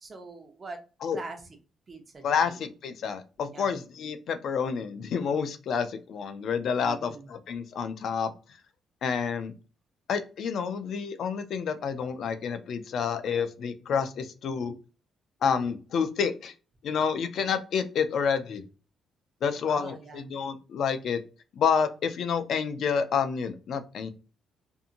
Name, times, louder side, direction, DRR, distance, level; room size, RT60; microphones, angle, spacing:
voice 1, 0.0-0.8 1.1-1.4 1.9-2.6 3.5-3.7 6.8-7.3 19.7-20.3, right 3 dB, 35° right, 3 dB, 0.8 m, -43 dB
voice 2, 2.2-8.3 9.0-9.5 10.1-14.7 15.4-16.5 16.8-18.6 19.4-21.2 21.6-24.1, left 6 dB, 65° left, 9 dB, 0.4 m, -29 dB
2.7 x 2.6 x 2.5 m, 0.34 s
cardioid pair, 90°, 0 cm